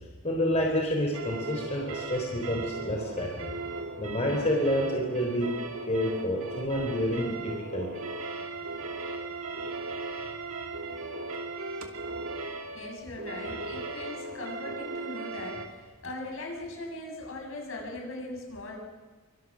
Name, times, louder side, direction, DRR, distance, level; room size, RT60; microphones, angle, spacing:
voice 1, 0.2-3.5 4.0-5.5 5.9-8.0, equal, 30° left, 0 dB, 3.7 m, -29 dB
sound 1, 1.1-15.7, right 3 dB, 70° right, 2.7 m, -37 dB
voice 2, 12.7-18.8, left 2 dB, 65° left, 0 dB, 7.9 m, -39 dB
27.5 x 25.5 x 6.4 m, 1.4 s
head